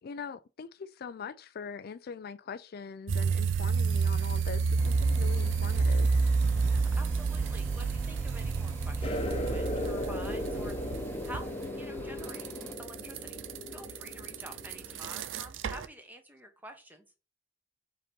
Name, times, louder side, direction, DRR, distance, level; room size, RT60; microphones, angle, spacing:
voice 1, 0.0-6.2, left 6 dB, 55° left, 0.4 m, -42 dB
sound 1, 3.1-15.9, right 4 dB, 85° right, 0.5 m, -29 dB
sound 2, 4.8-12.8, left 1 dB, 10° left, 0.6 m, -49 dB
voice 2, 6.6-12.5 12.8-13.4 13.7-17.0, right 1 dB, 10° right, 1.1 m, -48 dB
sound 3, 9.0-15.2, left 1 dB, 30° left, 1.0 m, -37 dB
5.1 x 4.1 x 5.2 m
head